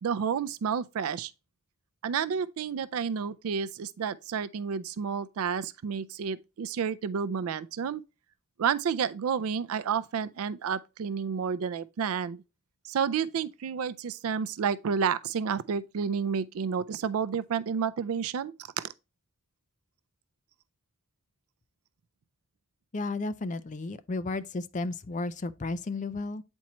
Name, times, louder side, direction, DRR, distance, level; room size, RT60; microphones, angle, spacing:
voice 1, 0.0-1.3 2.0-8.0 8.6-12.4 12.8-18.8, right 6 dB, 85° right, 0.4 m, -30 dB
voice 2, 22.9-26.4, left 3 dB, 35° left, 0.5 m, -33 dB
8.4 x 4.4 x 2.9 m
head